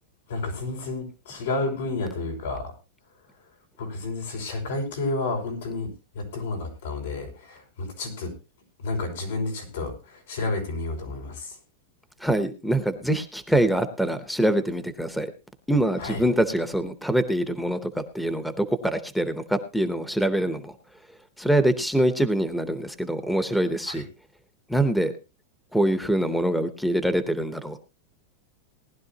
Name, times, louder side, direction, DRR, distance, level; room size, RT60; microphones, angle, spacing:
voice 1, 0.3-2.6 3.8-5.9 6.1-8.3 8.8-11.6 16.0-16.2 23.9-24.0, left 3 dB, 90° left, 2 dB, 5.5 m, -30 dB
voice 2, 12.2-15.3 15.7-20.7 21.4-24.1 24.7-25.1 25.7-27.8, right 1 dB, ahead, 11 dB, 0.7 m, -24 dB
19.0 x 11.5 x 2.8 m, 0.29 s
supercardioid pair, 165°, 0 cm